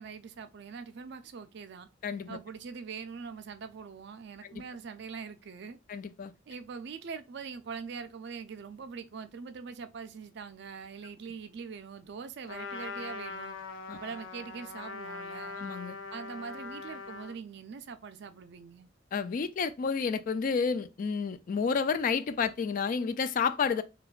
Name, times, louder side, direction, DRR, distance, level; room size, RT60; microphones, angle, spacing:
voice 1, 0.0-1.9 2.3-5.8 6.5-13.6 13.9-15.6 16.1-18.9, right 5 dB, 60° right, 0.4 m, -43 dB
voice 2, 2.0-2.4 5.9-6.3 13.9-14.0 15.5-16.0 19.1-23.8, left 5 dB, 45° left, 0.3 m, -30 dB
Trumpet, 12.5-17.4, left 4 dB, 80° left, 0.6 m, -41 dB
4.8 x 2.2 x 2.4 m
head